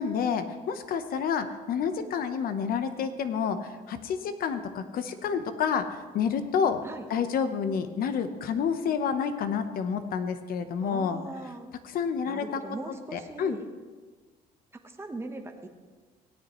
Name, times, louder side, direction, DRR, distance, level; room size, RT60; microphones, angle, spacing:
voice 1, 0.0-6.8 7.1-11.2 11.9-12.4 13.1-13.6, left 6 dB, 60° left, 10 dB, 0.9 m, -29 dB
voice 2, 10.8-11.7 12.3-13.7 14.8-15.7, right 2 dB, 15° right, 4 dB, 1.1 m, -40 dB
17.0 x 9.7 x 3.1 m, 1.4 s
cardioid pair, 110°, 17 cm